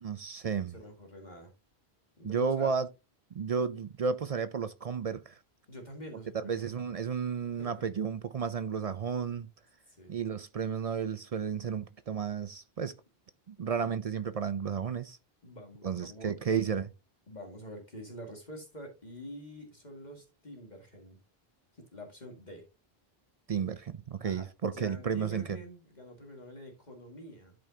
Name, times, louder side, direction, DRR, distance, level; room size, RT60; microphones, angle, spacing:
voice 1, 0.0-0.7 2.2-2.9 3.3-5.4 6.3-9.5 10.1-12.9 13.5-15.2 15.8-16.9 23.5-25.4, right 6 dB, 50° right, 0.4 m, -32 dB
voice 2, 0.7-1.5 2.2-2.7 5.7-6.7 7.5-7.7 9.9-10.2 13.6-13.9 15.4-16.7 17.3-21.2 21.7-22.6 24.2-27.6, equal, 45° left, 2.0 m, -47 dB
12.5 x 5.2 x 2.7 m
omnidirectional pair, 1.0 m